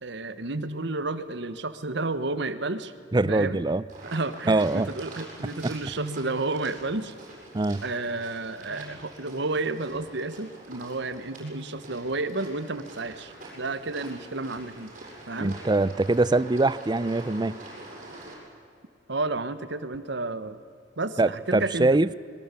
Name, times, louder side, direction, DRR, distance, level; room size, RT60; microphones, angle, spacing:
voice 1, 0.0-2.9 3.2-3.6 4.0-7.1 7.8-14.9 15.3-15.5 19.1-20.6 21.0-22.0, right 2 dB, 70° right, 12 dB, 1.3 m, -31 dB
voice 2, 3.1-3.8 4.5-4.9 5.6-5.7 7.5-7.8 15.4-17.5 21.2-22.1, right 2 dB, 25° right, 18 dB, 0.6 m, -23 dB
sound 1, 3.9-18.3, right 2 dB, 45° right, 7.6 m, -45 dB
26.5 x 22.0 x 8.3 m, 2.3 s
head